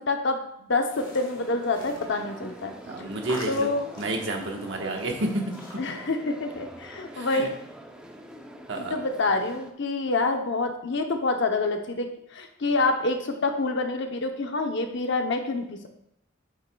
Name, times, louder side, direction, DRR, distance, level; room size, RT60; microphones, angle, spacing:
voice 1, 0.0-2.7 3.5-3.8 5.8-7.5 8.8-15.9, left 3 dB, 65° left, 5 dB, 0.8 m, -27 dB
sound 1, 0.8-5.8, left 1 dB, 25° left, 1.7 m, -46 dB
sound 2, 0.9-9.7, right 1 dB, 5° right, 0.7 m, -45 dB
voice 2, 2.9-3.7 4.0-5.8 7.1-7.5 8.7-8.9, right 1 dB, 70° right, 2 dB, 1.3 m, -30 dB
7.6 x 7.5 x 2.3 m, 0.76 s
head